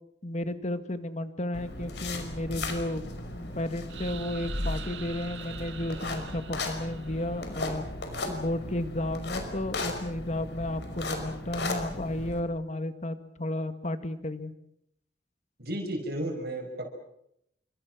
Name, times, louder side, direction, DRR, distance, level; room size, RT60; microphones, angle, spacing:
voice 1, 0.2-3.0 3.4-7.8 8.3-14.5, left 1 dB, 40° left, 10 dB, 1.9 m, -33 dB
sound 1, 1.5-12.4, left 2 dB, 70° left, 5.5 m, -36 dB
sound 2, 3.9-7.7, right 8 dB, 80° right, 2.1 m, -45 dB
voice 2, 15.6-16.9, right 1 dB, 60° right, 3 dB, 5.8 m, -33 dB
29.0 x 26.0 x 6.3 m, 0.76 s
head